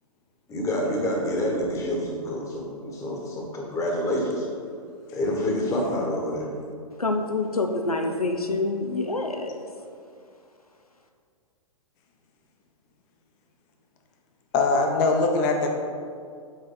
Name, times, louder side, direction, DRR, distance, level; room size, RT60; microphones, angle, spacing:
voice 1, 0.5-4.5 5.1-6.5, left 1 dB, 15° left, -1 dB, 1.2 m, -27 dB
voice 2, 7.0-9.7, left 2 dB, 90° left, 4 dB, 0.6 m, -26 dB
voice 3, 14.5-15.7, left 3 dB, 30° left, 3 dB, 0.9 m, -21 dB
8.0 x 4.8 x 3.9 m, 2.3 s
figure-of-eight pair, 115°, 18 cm